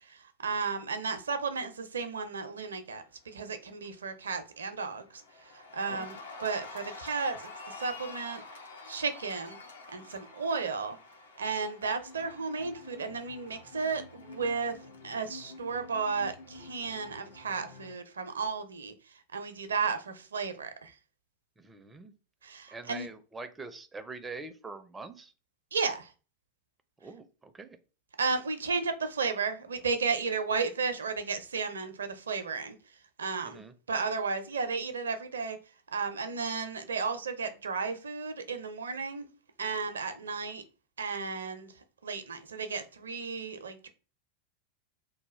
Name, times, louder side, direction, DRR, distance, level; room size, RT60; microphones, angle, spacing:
voice 1, 0.1-5.2 5.5-7.3 7.7-8.4 8.9-9.6 9.9-11.0 11.4-14.7 15.0-18.9 19.3-20.9 22.4-23.1 25.7-26.1 28.2-32.8 33.2-33.6 33.9-35.6 35.9-39.3 39.6-40.6 41.0-41.7 42.0-43.9, right 5 dB, 70° right, 0.5 m, -33 dB
Cheering, 3.1-3.5 3.8-17.9, left 3 dB, 65° left, 0.6 m, -48 dB
voice 2, 21.6-22.1 22.7-25.3 27.0-27.8 33.4-33.7, right 3 dB, 15° right, 0.4 m, -44 dB
2.8 x 2.2 x 3.2 m
figure-of-eight pair, 90°, 0 cm